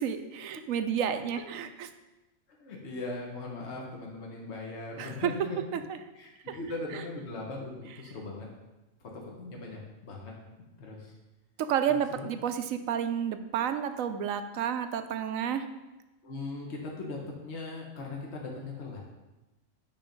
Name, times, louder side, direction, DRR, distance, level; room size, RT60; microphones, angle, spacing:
voice 1, 0.0-1.9 5.0-5.3 5.7-6.0 6.5-6.6 6.9-7.0 11.7-15.7, right 8 dB, 85° right, 9 dB, 1.0 m, -31 dB
voice 2, 2.6-5.6 6.1-8.5 9.2-10.3 10.6-11.1 12.2-12.3 16.2-19.0, left 2 dB, 55° left, -1 dB, 1.5 m, -39 dB
9.7 x 3.8 x 5.2 m, 1.1 s
omnidirectional pair, 1.4 m